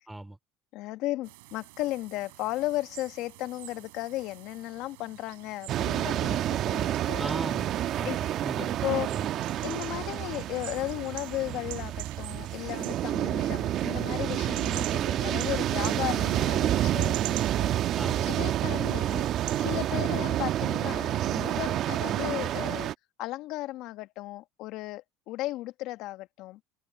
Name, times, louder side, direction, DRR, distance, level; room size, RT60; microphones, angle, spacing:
voice 1, 0.1-0.4 7.2-8.8 9.1-9.3 18.0-18.3, right 2 dB, 10° right, 3.2 m, -38 dB
voice 2, 0.7-7.2 8.0-8.2 8.8-9.1 9.6-18.0 18.2-19.2 19.6-22.9 23.2-26.6, left 17 dB, 65° left, 1.4 m, -35 dB
sound 1, 1.2-19.6, right 26 dB, 80° right, 7.4 m, -46 dB
sound 2, 5.7-22.9, right 12 dB, 55° right, 1.1 m, -29 dB
open air
supercardioid pair, 85°, 0 cm